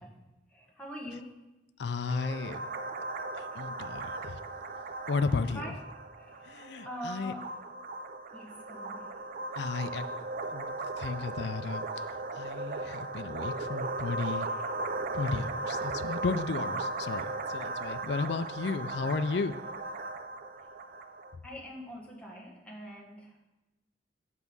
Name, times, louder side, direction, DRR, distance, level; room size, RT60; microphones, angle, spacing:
voice 1, 0.5-1.4 5.5-5.8 6.2-6.5 6.8-7.5 8.3-9.0 14.3-14.5 21.4-23.5, equal, 5° left, -3 dB, 1.5 m, -43 dB
voice 2, 1.8-2.7 3.3-4.4 5.1-5.7 6.4-7.3 9.5-12.0 12.3-14.5 15.1-19.6, left 4 dB, 65° left, 10 dB, 0.4 m, -34 dB
sound 1, 2.1-21.4, right 2 dB, 50° right, 0.5 m, -37 dB
8.3 x 5.8 x 5.4 m, 1.0 s
head